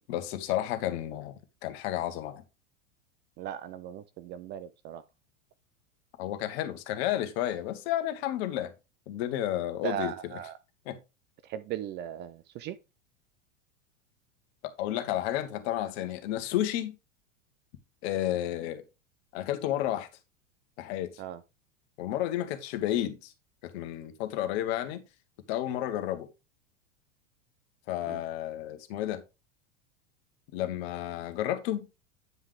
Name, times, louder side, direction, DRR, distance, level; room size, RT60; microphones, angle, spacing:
voice 1, 0.1-1.3 1.6-2.4 6.2-8.7 9.1-10.1 10.8-11.0 14.6-16.9 18.0-18.8 19.3-20.1 20.8-21.1 22.0-23.3 23.6-25.0 25.5-26.3 27.9-29.2 30.5-31.9, left 12 dB, 55° left, 1.5 m, -31 dB
voice 2, 3.4-5.0 9.8-10.5 11.4-12.7 21.2-21.4 24.4-24.5 28.1-28.2, right 10 dB, 30° right, 0.4 m, -37 dB
9.4 x 5.5 x 3.4 m
figure-of-eight pair, 90°, 39 cm